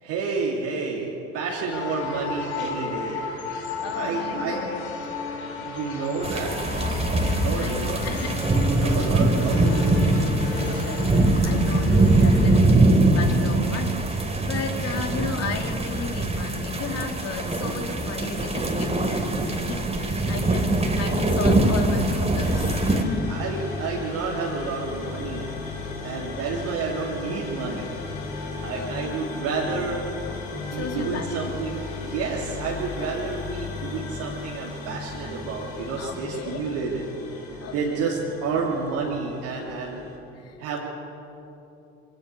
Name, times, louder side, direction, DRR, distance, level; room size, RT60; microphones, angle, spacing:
voice 1, 0.0-3.3 3.9-4.6 5.6-6.8 7.4-8.0 8.6-10.0 23.0-25.6 26.0-28.0 28.6-30.0 30.5-40.1 40.6-40.9, right 4 dB, 70° right, -5 dB, 3.2 m, -30 dB
sound 1, 1.7-12.6, left 5 dB, 85° left, 2.7 m, -34 dB
voice 2, 3.8-5.0 7.2-8.5 8.9-9.1 10.2-23.2 23.8-23.9 25.7-25.9 28.7-29.0 30.7-31.6 36.0-36.8 37.6-38.0 40.3-40.6, left 4 dB, 50° left, 3 dB, 3.1 m, -35 dB
sound 2, 6.2-23.0, right 2 dB, 20° right, 3.2 m, -22 dB
sound 3, 22.4-40.2, left 4 dB, 70° left, 5.2 m, -35 dB
24.0 x 18.0 x 7.0 m, 2.9 s
hypercardioid pair, 65°, 32 cm